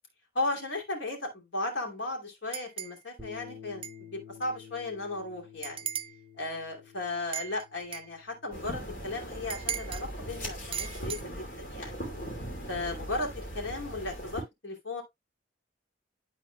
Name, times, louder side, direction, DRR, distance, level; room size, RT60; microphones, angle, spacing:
voice 1, 0.3-5.9 6.4-12.0 12.7-15.0, left 2 dB, 80° left, 2.7 m, -36 dB
sound 1, 2.5-3.0 3.8-4.0 4.4-4.5 5.6-6.2 7.3-8.1 9.5-10.1 10.7-11.2, right 9 dB, 30° right, 0.3 m, -37 dB
Bass guitar, 3.2-9.4, left 7 dB, 5° left, 2.9 m, -51 dB
sound 2, 8.5-14.4, equal, 45° left, 2.7 m, -39 dB
12.5 x 4.1 x 2.3 m
head